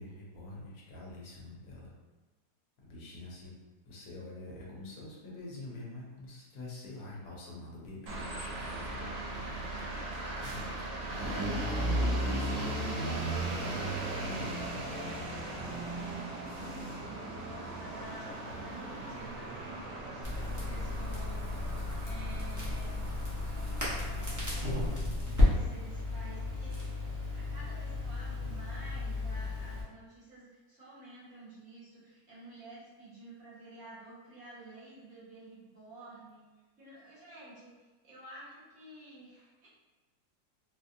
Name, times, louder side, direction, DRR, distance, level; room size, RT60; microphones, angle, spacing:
voice 1, 0.0-1.9 2.9-3.5 3.9-9.9 10.3-10.7 11.0-12.5 13.0-13.5 13.9-14.5 15.4-15.8, left 2 dB, 65° left, -4 dB, 1.2 m, -45 dB
sound 1, 8.1-25.0, right 1 dB, 65° right, 0.9 m, -37 dB
voice 2, 16.6-21.7 21.9-26.9 27.3-36.4 36.8-37.7 38.0-39.7, right 2 dB, 50° right, -10 dB, 1.7 m, -51 dB
Crackle, 20.2-29.8, left 2 dB, 25° right, 0.4 m, -33 dB
4.2 x 2.0 x 2.6 m, 1.2 s
omnidirectional pair, 1.8 m